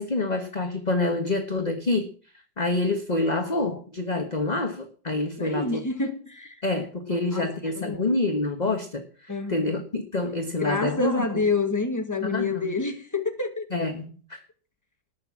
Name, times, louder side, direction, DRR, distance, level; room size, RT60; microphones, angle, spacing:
voice 1, 0.0-2.1 2.6-5.8 6.6-11.5 12.3-12.7 13.7-14.4, left 2 dB, 25° left, 1.4 m, -27 dB
voice 2, 5.4-6.6 7.1-8.1 9.3-9.7 10.6-13.7, left 3 dB, 10° left, 2.0 m, -28 dB
19.0 x 6.9 x 7.4 m
omnidirectional pair, 1.9 m